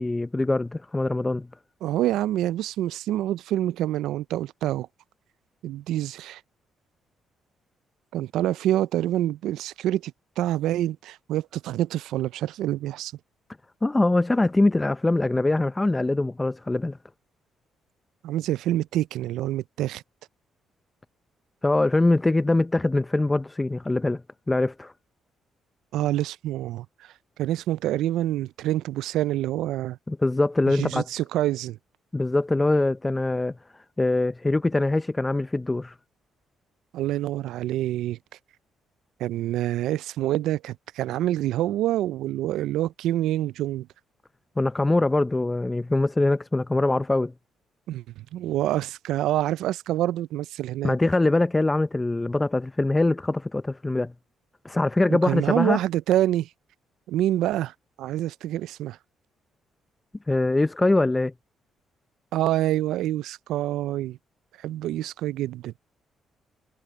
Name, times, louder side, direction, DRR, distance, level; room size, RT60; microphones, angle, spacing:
voice 1, 0.0-1.5 13.8-17.0 21.6-24.2 24.5-24.9 30.1-31.1 32.1-33.6 34.0-35.9 44.6-47.3 50.8-54.1 54.6-55.8 60.3-61.3, left 2 dB, 15° left, 0.5 m, -23 dB
voice 2, 1.8-4.9 5.6-6.4 8.1-13.1 18.2-20.0 25.9-26.9 27.4-30.0 30.7-31.8 36.9-38.2 39.2-43.9 47.9-51.0 55.2-56.5 57.1-59.0 62.3-64.2 64.6-65.7, right 13 dB, 85° right, 0.3 m, -26 dB
cardioid pair, 90°, 0 cm